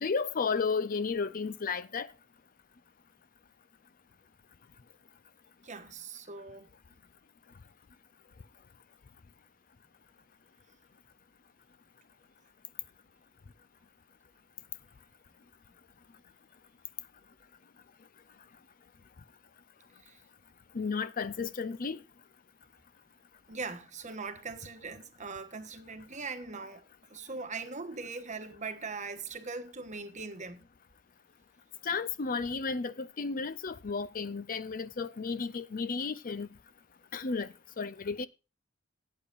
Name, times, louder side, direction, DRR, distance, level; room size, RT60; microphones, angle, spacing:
voice 1, 0.0-2.1 20.7-22.0 31.8-36.5 37.1-37.5 37.8-38.3, left 5 dB, 45° left, 0.5 m, -33 dB
voice 2, 5.6-6.7 20.0-20.2 23.5-26.8 27.1-30.6, right 4 dB, 40° right, 1.2 m, -41 dB
17.0 x 8.7 x 2.5 m
head